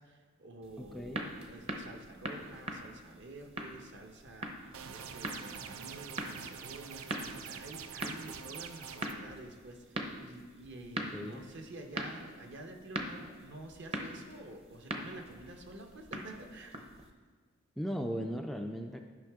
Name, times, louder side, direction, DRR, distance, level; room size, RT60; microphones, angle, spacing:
voice 1, 0.0-16.8, right 2 dB, 60° right, 3 dB, 1.0 m, -49 dB
sound 1, 0.6-17.1, right 1 dB, 30° right, 0.7 m, -43 dB
voice 2, 0.8-1.2 11.1-11.4 17.8-19.1, equal, ahead, 3 dB, 0.3 m, -37 dB
sound 2, 4.7-9.1, right 7 dB, 85° right, 0.5 m, -45 dB
12.0 x 5.7 x 3.6 m, 1.5 s
head